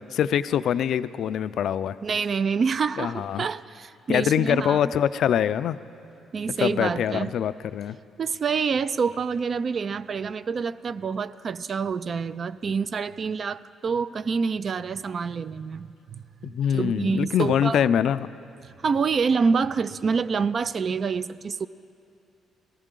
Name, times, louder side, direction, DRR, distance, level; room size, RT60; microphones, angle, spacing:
voice 1, 0.1-2.0 3.0-3.5 4.1-5.8 6.6-8.0 16.4-18.3, left 9 dB, 70° left, 14 dB, 0.3 m, -24 dB
voice 2, 2.0-4.8 6.3-7.3 8.2-16.2 16.7-17.9 18.8-21.7, right 5 dB, 45° right, 16 dB, 0.3 m, -27 dB
17.5 x 14.5 x 3.8 m, 2.6 s
cardioid pair, 90°, 0 cm